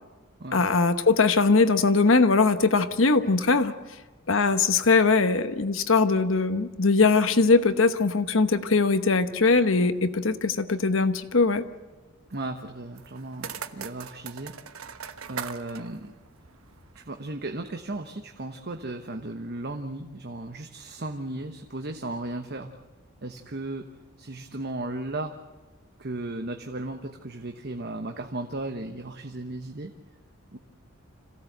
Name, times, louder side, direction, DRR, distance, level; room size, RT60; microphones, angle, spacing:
voice 1, 0.5-3.7 4.3-11.6, left 4 dB, 65° left, 10 dB, 1.1 m, -21 dB
voice 2, 12.3-14.5 15.3-16.1 16.9-22.7 23.2-23.9 24.2-25.3 26.0-29.9 30.5-30.6, right 2 dB, 50° right, 5 dB, 1.1 m, -35 dB
sound 1, 13.0-17.2, right 7 dB, 85° right, 1.1 m, -40 dB
26.5 x 16.5 x 8.0 m, 1.2 s
head